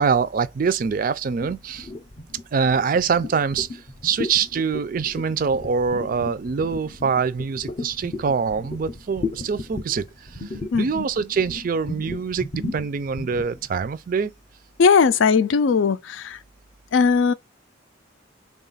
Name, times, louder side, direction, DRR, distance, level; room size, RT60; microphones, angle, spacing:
voice 1, 0.0-1.9 2.5-14.3, right 5 dB, 45° right, 0.4 m, -24 dB
sound 1, 1.4-13.7, left 2 dB, 35° left, 0.6 m, -35 dB
voice 2, 10.7-11.0 14.8-16.4 16.9-17.3, left 5 dB, 80° left, 0.4 m, -18 dB
3.7 x 2.4 x 3.9 m
head